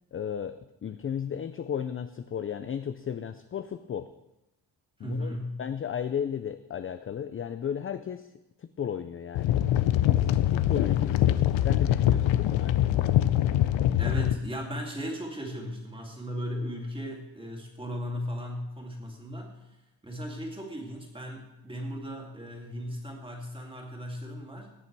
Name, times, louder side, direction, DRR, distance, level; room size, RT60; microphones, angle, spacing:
voice 1, 0.1-4.1 5.0-8.3 8.6-9.6 10.0-13.2, left 8 dB, 30° left, 10 dB, 0.4 m, -35 dB
voice 2, 5.0-5.6 14.0-19.6 20.0-24.7, equal, 10° right, 1 dB, 2.4 m, -36 dB
sound 1, 9.3-14.3, left 12 dB, 85° left, 0.7 m, -23 dB
17.5 x 8.5 x 4.7 m, 0.94 s
wide cardioid pair, 155°, 44 cm